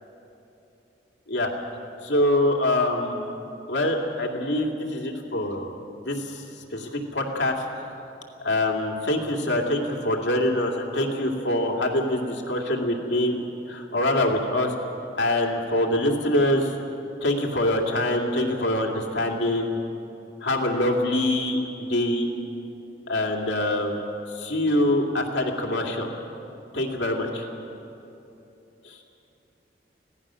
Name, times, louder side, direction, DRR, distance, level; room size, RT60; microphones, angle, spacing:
voice 1, 2.0-3.3 3.7-5.7 6.0-6.4 6.7-7.7 8.4-13.4 13.7-14.7 15.2-16.7 17.2-19.7 20.4-22.3 23.1-24.1 24.3-26.1 26.7-27.4 28.8-29.0, left 1 dB, 90° left, 1 dB, 2.4 m, -24 dB
25.5 x 17.0 x 6.3 m, 2.9 s
head